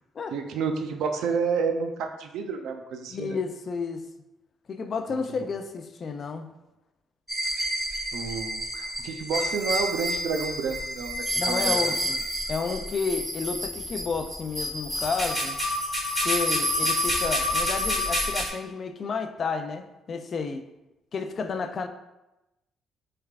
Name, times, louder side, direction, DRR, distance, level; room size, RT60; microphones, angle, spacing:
voice 1, 0.3-3.4 8.1-11.8, right 5 dB, 75° right, 5 dB, 0.4 m, -30 dB
voice 2, 3.1-4.0 4.7-6.5 11.4-12.2 12.5-15.6 16.2-20.6 21.1-21.9, left 5 dB, 35° left, 7 dB, 0.4 m, -31 dB
sound 1, 7.3-18.5, equal, ahead, 1.5 m, -28 dB
6.5 x 3.4 x 2.4 m, 0.96 s
cardioid pair, 150°, 0 cm